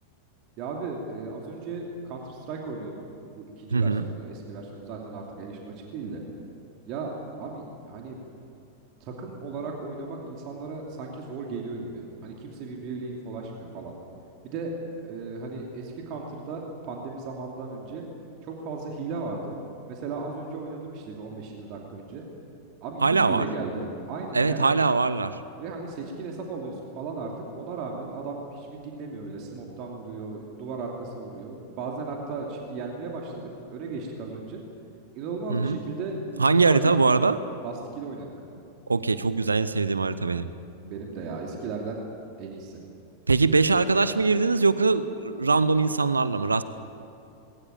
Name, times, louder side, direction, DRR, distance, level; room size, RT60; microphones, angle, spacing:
voice 1, 0.6-3.1 3.4-6.2 6.9-8.2 9.0-13.9 14.4-14.7 15.0-18.0 18.4-19.6 19.9-22.2 22.8-24.7 25.6-34.6 35.1-37.2 37.6-38.3 40.8-42.0 42.4-42.8, right 4 dB, 40° right, 0 dB, 2.7 m, -36 dB
voice 2, 3.7-4.1 23.0-23.5 24.3-25.4 35.5-35.8 36.4-37.4 38.9-40.5 43.3-46.6, right 4 dB, 80° right, 15 dB, 0.7 m, -22 dB
20.5 x 18.5 x 8.9 m, 2.6 s
figure-of-eight pair, 90°, 0 cm